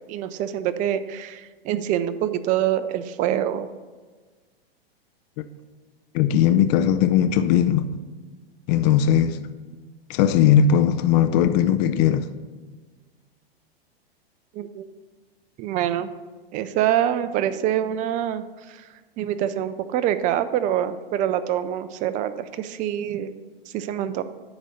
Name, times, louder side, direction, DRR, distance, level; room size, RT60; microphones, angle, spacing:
voice 1, 0.1-3.7 14.5-14.9 15.6-16.1 16.5-18.9 19.2-23.3 23.7-24.2, right 11 dB, 25° right, 0.4 m, -25 dB
voice 2, 6.1-7.9 8.7-9.4 10.1-12.3, left 9 dB, 45° left, 0.5 m, -19 dB
10.0 x 4.0 x 6.4 m
hypercardioid pair, 120°, 30 cm